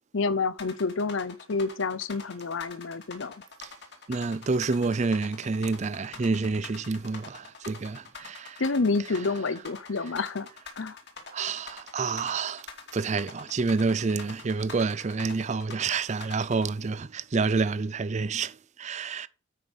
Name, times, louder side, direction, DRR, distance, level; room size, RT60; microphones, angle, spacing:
voice 1, 0.1-3.4 8.6-10.5 10.8-11.0, left 4 dB, 80° left, 0.7 m, -28 dB
sound 1, 0.6-16.7, left 5 dB, 60° left, 2.4 m, -44 dB
voice 2, 4.1-8.6 11.3-12.7 12.9-19.3, right 4 dB, 35° right, 0.4 m, -28 dB
9.3 x 5.3 x 6.3 m
head